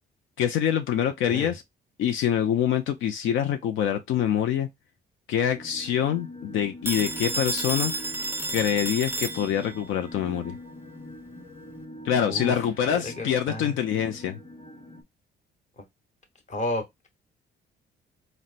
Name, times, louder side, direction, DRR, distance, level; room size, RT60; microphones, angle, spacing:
voice 1, 0.4-1.6 2.0-4.7 5.3-7.9 8.5-10.6 12.0-14.4, left 9 dB, 80° left, 0.5 m, -25 dB
sound 1, 5.5-15.0, left 1 dB, 15° left, 0.9 m, -44 dB
Telephone, 6.9-9.9, right 2 dB, 10° right, 0.5 m, -31 dB
voice 2, 12.3-12.6 12.9-13.8 16.5-16.8, left 1 dB, 35° left, 1.0 m, -32 dB
4.0 x 2.1 x 2.4 m
cardioid pair, 90°, 20 cm